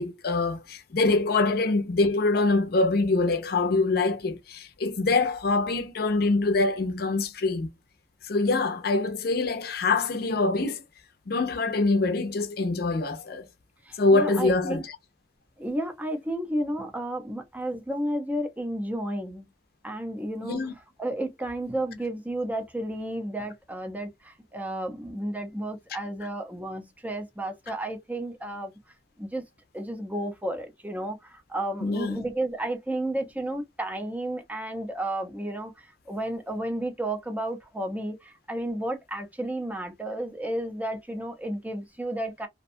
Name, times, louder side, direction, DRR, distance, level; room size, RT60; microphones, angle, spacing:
voice 1, 0.0-7.7 8.2-10.8 11.3-13.5 14.0-14.8 20.4-20.7 31.8-32.2, left 3 dB, 60° left, 0.6 m, -24 dB
voice 2, 13.8-14.8 15.6-19.4 19.8-20.7 21.0-28.7 29.2-29.4 29.7-42.5, right 1 dB, 10° right, 0.6 m, -32 dB
2.6 x 2.2 x 2.5 m
head